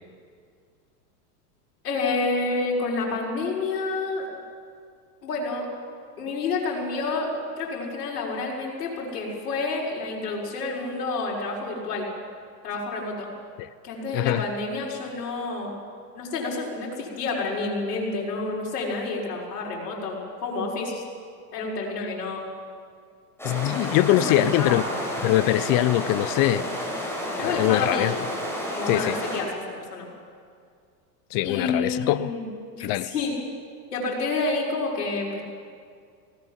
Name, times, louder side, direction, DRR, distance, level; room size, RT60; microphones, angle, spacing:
voice 1, 1.8-4.3 5.2-5.7 6.2-7.3 7.6-12.1 12.6-13.3 13.8-15.7 16.1-21.0 21.5-22.4 24.1-25.0 27.4-28.1 28.7-29.5 29.8-30.1 31.4-33.3 33.9-35.4, left 3 dB, 75° left, 6.1 m, -29 dB
voice 2, 14.1-14.4 22.0-22.1 23.4-24.8 25.2-26.7 27.4-28.1 28.9-29.2 31.3-32.3 32.8-33.1, left 15 dB, 45° left, 0.9 m, -22 dB
sound 1, 23.4-29.4, equal, 5° left, 7.2 m, -31 dB
19.0 x 18.0 x 9.1 m
hypercardioid pair, 90°, 47 cm